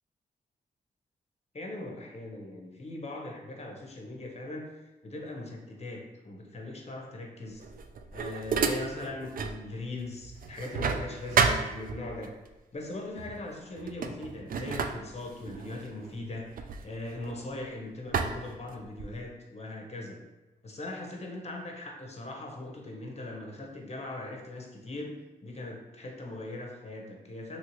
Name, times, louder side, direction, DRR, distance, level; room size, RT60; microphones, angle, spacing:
voice 1, 1.5-4.7 5.0-7.6 8.1-12.4 12.7-20.2 20.6-27.6, left 2 dB, 35° left, 1 dB, 0.8 m, -40 dB
sound 1, 7.6-9.6 10.0-12.3 13.2-13.4 13.8-17.6 18.1-19.3, right 5 dB, 50° right, 0.4 m, -31 dB
3.0 x 2.7 x 3.0 m, 1.1 s
supercardioid pair, 45°, 18 cm